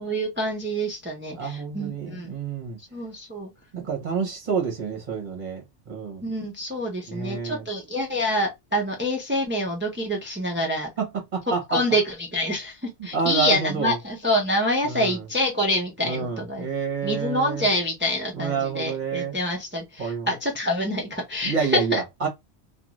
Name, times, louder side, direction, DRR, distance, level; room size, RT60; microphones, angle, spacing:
voice 1, 0.0-2.3 2.9-3.5 6.2-10.9 11.7-16.7 17.0-22.0, equal, 15° right, 0.6 m, -26 dB
voice 2, 1.4-2.8 3.7-6.2 7.1-7.6 10.6-10.7 11.0-11.8 13.0-14.0 14.8-15.2 16.0-17.7 18.3-19.4 20.0-20.3 21.4-22.3, right 5 dB, 45° right, 1.0 m, -28 dB
2.5 x 2.4 x 3.0 m
omnidirectional pair, 1.2 m